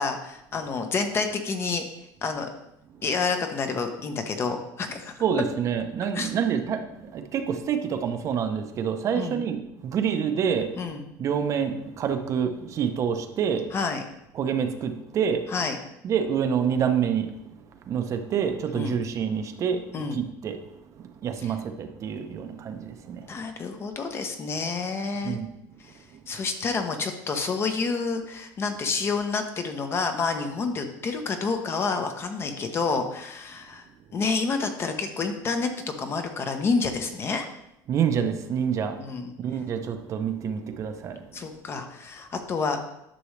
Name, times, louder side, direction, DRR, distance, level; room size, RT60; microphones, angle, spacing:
voice 1, 0.0-1.8 2.2-2.5 3.0-5.1 6.1-6.3 9.2-9.5 10.8-11.0 13.7-14.0 15.5-15.8 18.7-18.9 19.9-20.2 21.4-21.5 23.3-25.4 26.3-33.8 34.1-35.7 36.0-37.5 39.0-39.3 41.3-42.8, left 4 dB, 30° left, 6 dB, 0.8 m, -28 dB
voice 2, 5.2-10.7 11.2-13.7 14.3-15.4 16.0-17.3 17.9-20.6 20.9-23.4 25.2-25.5 37.9-39.0 39.4-41.4, right 7 dB, 40° right, 7 dB, 0.7 m, -27 dB
10.0 x 6.1 x 3.2 m, 0.84 s
cardioid pair, 150°, 8 cm